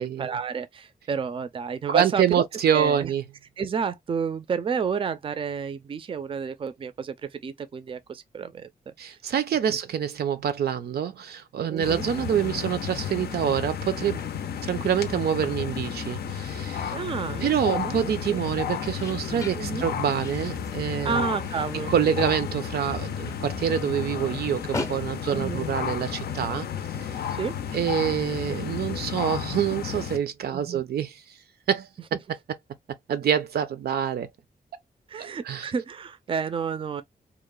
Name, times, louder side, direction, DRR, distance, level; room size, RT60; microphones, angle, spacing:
voice 1, 0.0-2.4 2.7-3.1 3.6-9.2 9.7-9.8 11.7-12.1 16.9-18.4 19.6-19.8 21.0-22.3 25.3-25.6 27.3-27.6 30.5-30.8 35.1-37.0, right 6 dB, 35° right, 0.4 m, -31 dB
voice 2, 1.9-3.2 9.0-14.2 14.6-16.9 17.4-21.3 21.9-26.7 27.0-27.1 27.7-31.2 31.7-31.9 33.1-34.3 35.1-35.7, right 9 dB, 90° right, 0.5 m, -26 dB
sound 1, 11.7-26.1, left 2 dB, 20° left, 0.5 m, -44 dB
sound 2, 11.8-30.2, left 8 dB, 85° left, 0.4 m, -32 dB
2.9 x 2.0 x 2.2 m
wide cardioid pair, 110°, 16 cm